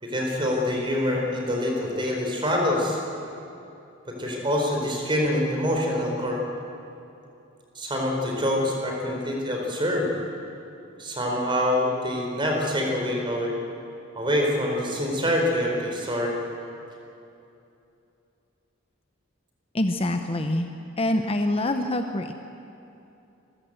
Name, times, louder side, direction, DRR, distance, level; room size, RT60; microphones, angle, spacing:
voice 1, 0.0-3.0 4.1-6.4 7.7-10.1 11.0-13.5 14.1-16.4, left 1 dB, 25° right, 0 dB, 4.3 m, -25 dB
voice 2, 19.7-20.7 21.0-22.3, left 1 dB, 30° left, 6 dB, 0.8 m, -25 dB
26.5 x 15.5 x 8.1 m, 2.7 s
head